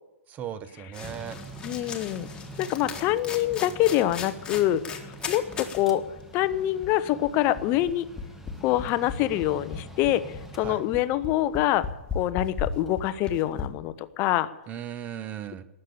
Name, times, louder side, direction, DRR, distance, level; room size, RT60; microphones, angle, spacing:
voice 1, 0.3-1.4 10.6-10.8 14.7-15.6, right 9 dB, 20° right, 14 dB, 0.8 m, -37 dB
sound 1, 0.9-5.8 6.2-6.3 6.5-13.6, left 5 dB, 10° left, 1.5 m, -38 dB
Mechanical fan, 1.0-14.4, right 1 dB, 5° right, 1.2 m, -46 dB
voice 2, 1.6-2.3 2.6-6.0 6.3-8.0 8.6-11.9 12.1-14.5, left 13 dB, 30° left, 13 dB, 0.7 m, -25 dB
19.0 x 6.8 x 8.7 m, 0.98 s
figure-of-eight pair, 115°, 8 cm